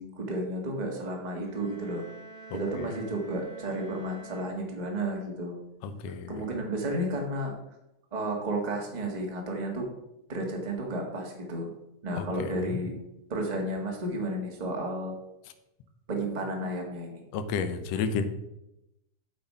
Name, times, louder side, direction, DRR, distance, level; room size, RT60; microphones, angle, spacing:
voice 1, 0.0-2.0 2.5-5.6 6.3-7.5 8.1-9.9 10.3-11.7 12.0-13.0 13.3-15.1 16.1-17.2, right 1 dB, 20° right, 0 dB, 1.2 m, -32 dB
sound 1, 1.4-5.2, right 4 dB, 45° right, 2.9 m, -49 dB
voice 2, 5.8-6.3 12.4-12.8 17.3-18.2, left 5 dB, 70° left, 9 dB, 1.8 m, -31 dB
8.7 x 6.7 x 5.5 m, 0.89 s
omnidirectional pair, 3.4 m